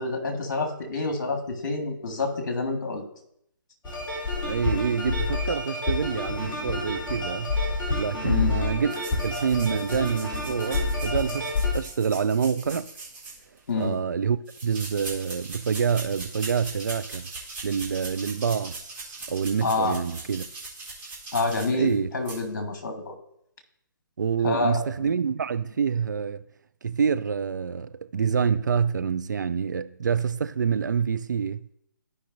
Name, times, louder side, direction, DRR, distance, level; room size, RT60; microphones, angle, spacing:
voice 1, 0.0-3.0 8.2-8.5 13.7-14.0 19.6-20.0 21.3-23.1 24.4-25.1, left 3 dB, 55° left, 1.8 m, -28 dB
sound 1, 3.8-11.7, left 3 dB, 10° left, 2.6 m, -28 dB
voice 2, 4.4-7.5 8.0-9.0 9.2-12.9 13.8-14.4 14.6-17.3 17.6-20.4 21.7-22.1 24.2-26.4 26.8-31.7, right 6 dB, 60° right, 0.4 m, -27 dB
sound 2, 8.9-13.8 14.5-21.9 22.2-22.4, right 3 dB, 15° right, 1.9 m, -40 dB
14.5 x 5.4 x 2.6 m
figure-of-eight pair, 140°, 11 cm